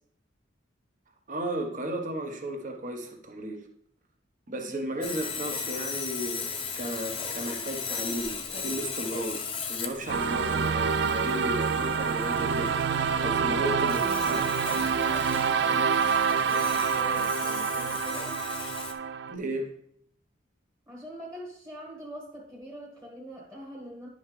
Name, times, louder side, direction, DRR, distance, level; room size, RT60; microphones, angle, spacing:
voice 1, 1.3-3.6 4.5-12.8 13.2-14.5 19.3-19.8, right 1 dB, 45° right, 1.1 m, -34 dB
voice 2, 4.6-5.1 13.6-13.9 14.7-18.4 20.9-24.1, right 1 dB, 20° right, 1.6 m, -43 dB
Sawing, 5.0-18.9, left 5 dB, 30° left, 0.8 m, -37 dB
sound 1, 10.1-19.3, right 6 dB, 60° right, 0.4 m, -27 dB
11.0 x 5.6 x 3.2 m
head